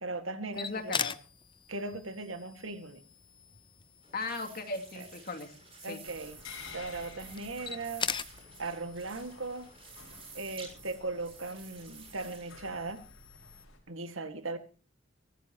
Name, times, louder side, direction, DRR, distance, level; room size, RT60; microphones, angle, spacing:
voice 1, 0.0-1.0 1.7-3.0 5.0-5.1 5.8-6.4 6.7-8.1 8.6-9.7 10.3-13.0 13.9-14.6, right 3 dB, 75° right, 2.0 m, -38 dB
sound 1, 0.5-13.7, left 6 dB, 25° left, 0.7 m, -43 dB
voice 2, 0.6-1.2 4.1-5.5 5.8-6.0, left 3 dB, 50° left, 2.7 m, -37 dB
sound 2, 4.0-12.6, right 5 dB, 30° right, 6.6 m, -52 dB
sound 3, 6.0-13.8, left 4 dB, 85° left, 6.2 m, -52 dB
23.5 x 16.0 x 3.0 m
head